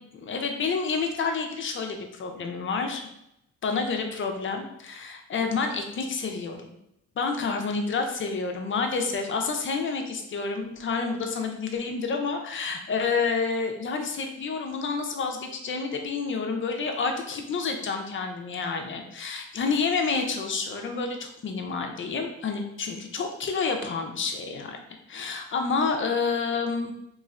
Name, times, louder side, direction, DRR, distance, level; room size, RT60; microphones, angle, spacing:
voice 1, 0.1-3.1 3.6-6.6 7.2-24.8 25.1-26.9, left 4 dB, 40° left, 4 dB, 0.5 m, -29 dB
3.1 x 3.0 x 2.4 m, 0.81 s
cardioid pair, 90°, 30 cm